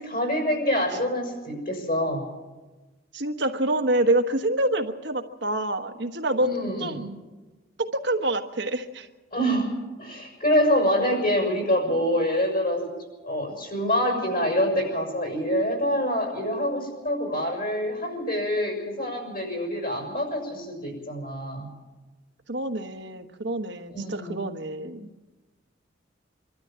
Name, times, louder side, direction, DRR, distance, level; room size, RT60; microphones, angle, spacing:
voice 1, 0.0-2.3 6.4-7.1 9.3-9.7 10.0-12.9 13.2-21.7 23.9-24.5, equal, 50° left, 2 dB, 6.6 m, -26 dB
voice 2, 3.1-6.5 6.8-7.0 7.8-9.1 22.5-25.1, right 1 dB, 65° right, 6 dB, 1.3 m, -26 dB
24.5 x 13.0 x 8.8 m, 1.2 s
head